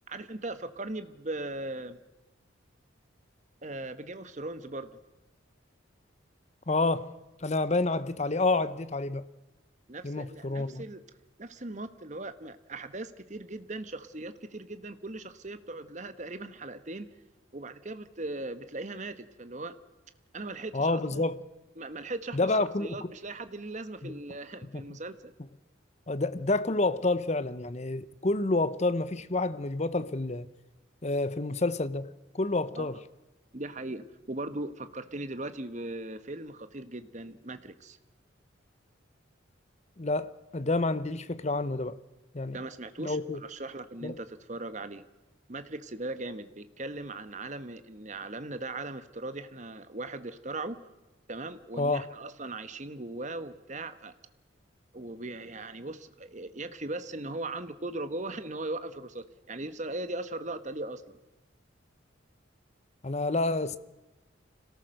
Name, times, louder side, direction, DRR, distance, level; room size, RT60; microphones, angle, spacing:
voice 1, 0.1-2.0 3.6-5.0 9.9-11.0 11.4-17.1 17.5-19.8 20.3-21.3 21.8-25.3 32.7-33.0 33.5-38.0 42.5-45.0 45.5-50.8 51.3-54.1 54.9-61.2, right 2 dB, 35° right, 1.2 m, -39 dB
voice 2, 6.7-7.1 7.4-9.2 10.0-10.8 20.7-21.4 22.3-23.1 24.0-24.1 24.7-24.8 26.1-30.5 31.0-33.0 40.0-42.0 42.3-42.6 43.0-43.4 44.0-44.2 51.8-52.0 63.0-63.8, left 2 dB, 35° left, 0.8 m, -29 dB
26.0 x 18.0 x 6.5 m
head